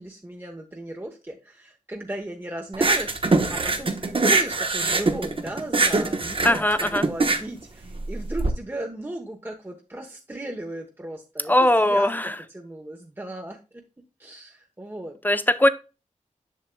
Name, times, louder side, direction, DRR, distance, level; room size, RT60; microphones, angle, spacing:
voice 1, 0.0-13.8 14.2-15.1, right 1 dB, 15° right, 2 dB, 0.9 m, -36 dB
sound 1, 2.7-8.5, right 3 dB, 40° right, 1.0 m, -23 dB
voice 2, 6.4-7.0 11.5-12.3 15.2-15.7, left 1 dB, 15° left, 13 dB, 0.6 m, -20 dB
7.5 x 6.5 x 2.2 m, 0.30 s
wide cardioid pair, 65°, 13 cm